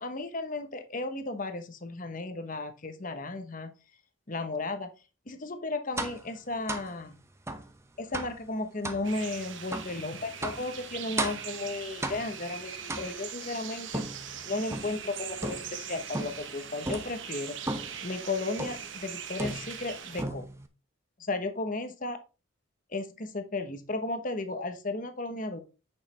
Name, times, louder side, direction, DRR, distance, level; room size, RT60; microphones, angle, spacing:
voice 1, 0.0-3.7 4.3-4.9 5.3-7.2 8.0-14.0 14.4-17.6 18.0-20.4 21.2-22.2 22.9-25.6, left 2 dB, 40° left, 8 dB, 1.0 m, -34 dB
sound 1, 6.0-6.3 6.7-6.9 7.5-7.7 8.1-8.4 8.8-9.1 9.7-9.9 10.4-10.7 11.2-11.5 12.0-12.4 12.9-13.4 13.9-15.0 15.4-15.8 16.1-16.5 16.8-17.2 17.7-18.0 18.6-18.9 19.4-19.9 20.2-20.7, right 2 dB, 15° right, 0.7 m, -35 dB
sound 2, 9.0-20.2, right 8 dB, 65° right, 1.2 m, -41 dB
8.8 x 6.5 x 3.3 m, 0.31 s
head